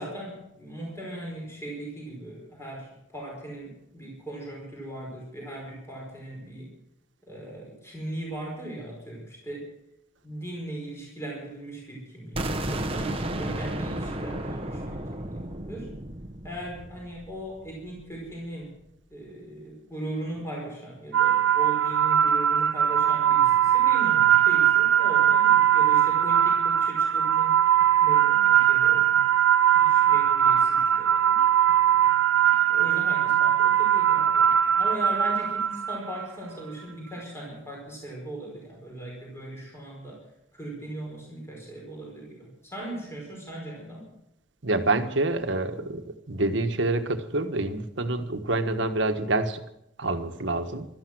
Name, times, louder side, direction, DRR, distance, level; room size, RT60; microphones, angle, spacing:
voice 1, 0.0-6.7 7.3-9.7 10.2-16.0 16.4-18.7 19.1-27.6 28.0-29.2 29.8-31.5 32.7-40.2 40.5-44.1, right 1 dB, 15° left, -2 dB, 5.0 m, -38 dB
sound 1, 12.4-18.1, right 1 dB, 30° right, 1.1 m, -33 dB
sound 2, 21.1-36.3, right 10 dB, 80° right, 0.5 m, -21 dB
voice 2, 44.6-49.6 50.0-50.9, right 2 dB, 65° right, 8 dB, 1.4 m, -27 dB
16.5 x 13.0 x 6.2 m, 0.79 s
head